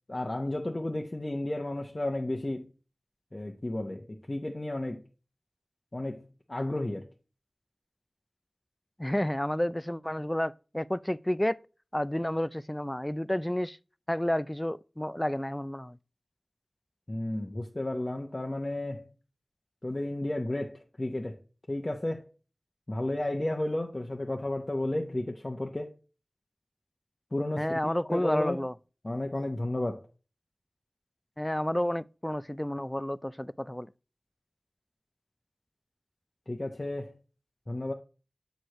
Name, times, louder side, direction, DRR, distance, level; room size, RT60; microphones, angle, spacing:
voice 1, 0.1-2.7 3.3-5.0 5.9-7.1 17.1-19.1 19.8-21.4 21.7-22.3 22.9-25.9 27.3-27.8 28.1-28.7 29.0-30.1 36.5-37.1 37.7-37.9, left 1 dB, 40° left, 0.9 m, -33 dB
voice 2, 9.0-11.6 11.9-13.8 14.1-16.0 27.6-28.7 31.4-33.9, left 1 dB, 15° left, 0.3 m, -30 dB
8.0 x 4.7 x 3.0 m
wide cardioid pair, 50°, 0 cm